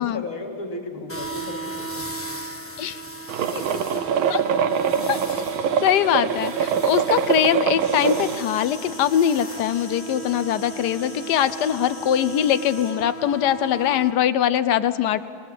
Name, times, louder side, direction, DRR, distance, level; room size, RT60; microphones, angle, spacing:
voice 1, 0.0-2.0, left 2 dB, 85° left, 1 dB, 3.2 m, -34 dB
sound 1, 1.1-14.1, right 3 dB, 10° left, 0.9 m, -36 dB
sound 2, 3.3-8.4, right 7 dB, 80° right, 1.6 m, -23 dB
voice 2, 5.1-5.4 5.8-15.2, left 10 dB, 65° left, 13 dB, 1.1 m, -22 dB
Insect, 7.8-12.9, left 1 dB, 35° left, 7.4 m, -43 dB
26.5 x 18.5 x 7.7 m, 2.3 s
omnidirectional pair, 2.2 m